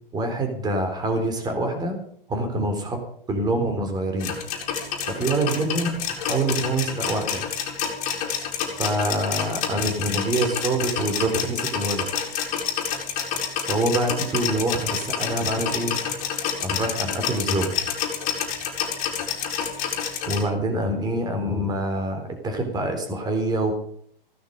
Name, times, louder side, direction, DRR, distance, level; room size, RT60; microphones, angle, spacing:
voice 1, 0.1-2.0 2.3-3.0 3.3-4.4 5.1-7.4 8.6-12.1 13.6-16.0 16.6-17.9 20.3-23.7, right 2 dB, 15° right, 5 dB, 3.7 m, -25 dB
sound 1, 4.2-20.4, left 8 dB, 25° left, 4.4 m, -28 dB
16.0 x 13.5 x 5.4 m, 0.63 s
figure-of-eight pair, 120°, 29 cm